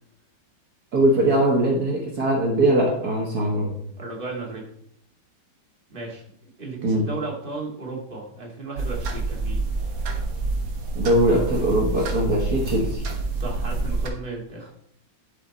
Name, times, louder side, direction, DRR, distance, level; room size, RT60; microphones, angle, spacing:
voice 1, 0.9-3.8 6.8-7.1 11.0-13.0, right 1 dB, 55° right, -2 dB, 2.0 m, -21 dB
voice 2, 4.0-4.7 5.9-9.6 13.3-14.7, right 3 dB, 30° right, -2 dB, 2.4 m, -35 dB
sound 1, 8.8-14.1, right 3 dB, 90° right, 2.0 m, -27 dB
11.5 x 5.8 x 4.2 m, 0.67 s
omnidirectional pair, 2.0 m